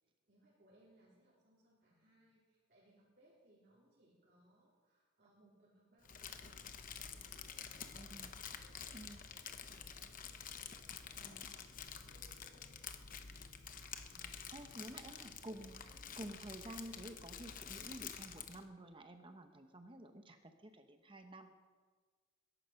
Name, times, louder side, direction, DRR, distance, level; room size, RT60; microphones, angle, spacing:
voice 1, 0.0-9.8 10.2-13.4, right 1 dB, 40° right, -6 dB, 3.5 m, -70 dB
Crumpling crinkling, 6.0-18.6, left 7 dB, 40° left, 0.8 m, -49 dB
voice 2, 7.9-8.3 8.9-9.2 11.2-11.5 14.1-21.5, right 1 dB, 25° right, 7 dB, 0.9 m, -51 dB
21.5 x 11.0 x 5.8 m, 1.5 s
head